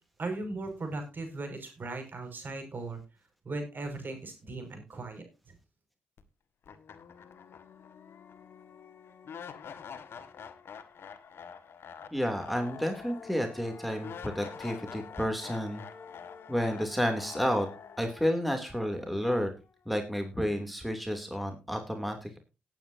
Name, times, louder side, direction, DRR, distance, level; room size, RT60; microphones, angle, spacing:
voice 1, 0.2-3.0 3.4-5.3, right 2 dB, 50° right, 5 dB, 5.8 m, -37 dB
sound 1, 6.2-6.3 6.7-19.7, left 6 dB, 65° left, 1.7 m, -46 dB
voice 2, 12.1-15.8 16.5-17.7 18.0-19.5 19.9-22.4, equal, ahead, 5 dB, 2.9 m, -31 dB
18.0 x 9.3 x 2.8 m, 0.28 s
supercardioid pair, 45°, 4 cm